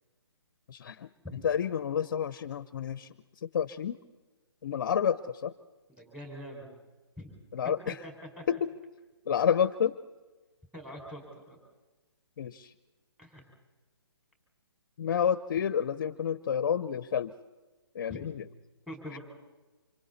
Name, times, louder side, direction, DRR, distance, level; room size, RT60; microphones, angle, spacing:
voice 1, 0.7-4.0 4.6-5.5 7.5-8.0 8.5-8.7 9.3-10.0 12.4-12.7 15.0-17.4 17.9-18.5 19.1-19.2, left 8 dB, 45° left, 15 dB, 0.8 m, -30 dB
voice 2, 5.9-6.7 7.2-7.3 7.9-8.4 10.7-11.6 13.2-13.4 18.1-18.2 18.9-19.2, equal, 5° right, 0 dB, 5.8 m, -44 dB
29.0 x 27.0 x 4.2 m, 1.2 s
figure-of-eight pair, 140°, 14 cm